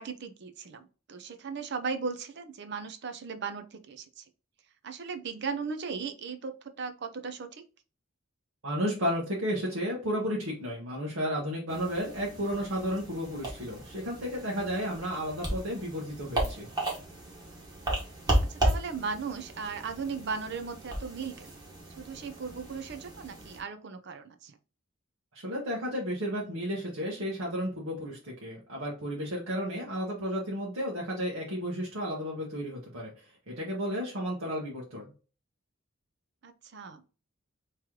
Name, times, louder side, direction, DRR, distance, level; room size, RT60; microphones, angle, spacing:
voice 1, 0.0-4.2 4.8-7.6 18.5-21.6 22.0-24.6 29.8-30.0 36.4-37.1, right 5 dB, 55° right, 8 dB, 0.6 m, -37 dB
voice 2, 8.6-16.7 25.3-35.1, equal, 80° right, -4 dB, 1.1 m, -33 dB
sound 1, 11.7-23.6, right 1 dB, 20° right, 1.3 m, -35 dB
3.1 x 3.1 x 3.7 m, 0.35 s
head